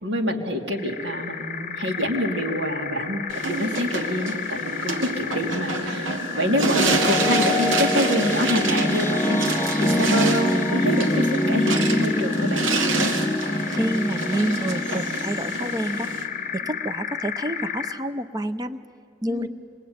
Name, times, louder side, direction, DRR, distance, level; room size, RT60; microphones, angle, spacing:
voice 1, 0.0-9.4 9.8-12.6 19.3-19.5, equal, 65° right, 2 dB, 2.6 m, -26 dB
sound 1, 0.7-18.1, left 7 dB, 40° left, 0.9 m, -32 dB
sound 2, 3.3-16.3, right 3 dB, 85° right, 2.0 m, -29 dB
sound 3, 5.9-16.9, left 1 dB, 10° left, 0.5 m, -25 dB
voice 2, 13.7-16.1 16.5-18.8 19.2-19.5, right 1 dB, 20° right, 11 dB, 0.8 m, -28 dB
26.5 x 22.0 x 9.5 m, 2.5 s
head